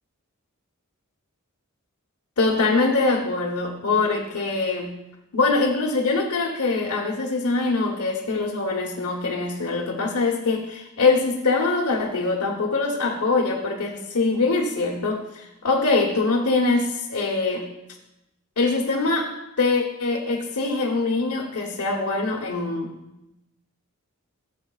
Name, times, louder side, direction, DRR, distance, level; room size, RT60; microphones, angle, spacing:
voice 1, 2.4-5.0 5.3-17.7 18.6-19.3 19.6-22.9, left 3 dB, 90° left, -2 dB, 1.1 m, -23 dB
15.0 x 7.7 x 2.4 m, 0.93 s
head